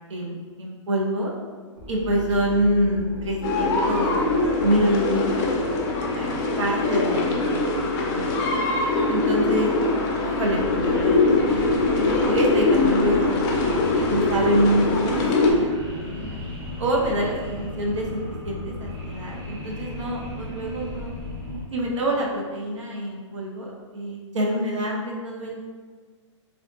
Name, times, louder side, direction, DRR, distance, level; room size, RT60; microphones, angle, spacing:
voice 1, 0.0-1.3 1.9-4.3 4.6-5.6 6.1-8.5 9.1-9.7 10.2-11.1 11.4-16.4 16.8-21.2 21.7-25.6, equal, 70° right, -1 dB, 0.8 m, -26 dB
sound 1, 1.8-21.6, left 2 dB, 55° right, 1.1 m, -36 dB
sound 2, 3.4-15.5, left 3 dB, 35° left, 0.5 m, -22 dB
3.5 x 2.5 x 2.3 m, 1.5 s
hypercardioid pair, 150°, 16 cm